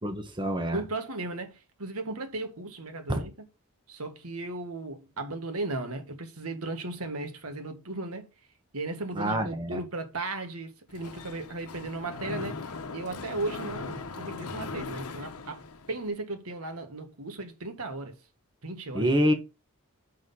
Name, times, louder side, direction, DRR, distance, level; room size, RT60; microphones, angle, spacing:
voice 1, 0.0-0.8 3.1-3.2 9.2-9.8 18.9-19.3, equal, 20° right, 1.4 m, -26 dB
voice 2, 0.7-3.5 3.9-8.3 8.7-15.6 15.9-18.2 18.6-19.2, right 2 dB, 90° right, 1.7 m, -36 dB
Mechanisms, 10.9-16.1, left 3 dB, 90° left, 0.9 m, -39 dB
6.6 x 5.6 x 5.5 m
head